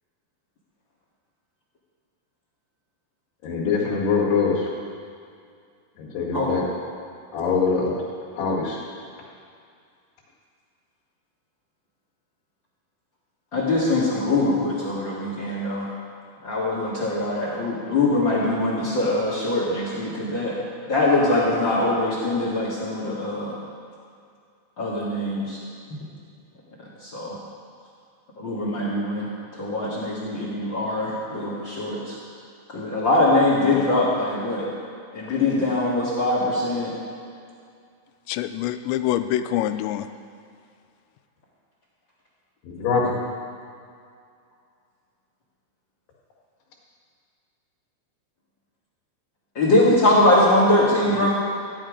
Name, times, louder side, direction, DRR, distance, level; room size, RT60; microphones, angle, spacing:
voice 1, 3.4-4.5 6.1-6.6 7.3-7.9 8.4-8.8 42.8-43.0, left 5 dB, 70° left, -4 dB, 3.6 m, -22 dB
voice 2, 13.5-15.9 16.4-20.6 20.9-23.5 24.8-25.6 27.0-27.3 28.4-32.1 32.7-34.7 35.1-36.9 49.5-51.3, left 2 dB, 40° left, -6 dB, 1.7 m, -22 dB
voice 3, 38.3-40.1 51.2-51.3, left 12 dB, 90° left, 10 dB, 2.8 m, -25 dB
15.0 x 10.5 x 5.1 m, 2.3 s
omnidirectional pair, 5.0 m